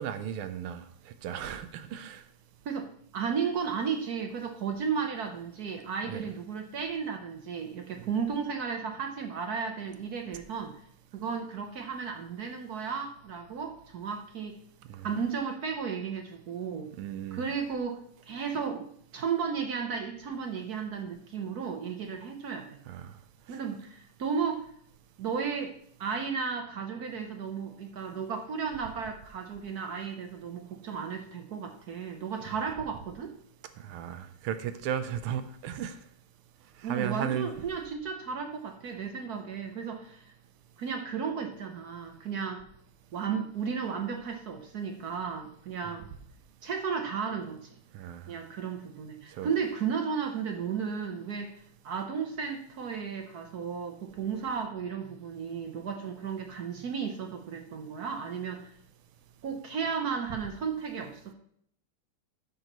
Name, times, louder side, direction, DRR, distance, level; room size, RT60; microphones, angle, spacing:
voice 1, 0.0-2.2 6.1-6.2 14.9-15.1 17.0-17.4 22.9-23.2 33.8-36.0 36.8-37.5 47.9-48.3 49.3-49.5, right 9 dB, 85° right, 10 dB, 1.6 m, -35 dB
voice 2, 3.1-10.8 11.1-14.6 15.0-16.9 17.3-22.8 23.5-24.7 25.2-25.7 26.0-33.3 36.8-40.3 40.8-42.7 43.1-46.1 46.6-47.8 48.3-58.7 59.4-61.3, right 6 dB, 60° right, 4 dB, 1.1 m, -34 dB
13.0 x 6.7 x 3.0 m, 0.68 s
omnidirectional pair, 2.4 m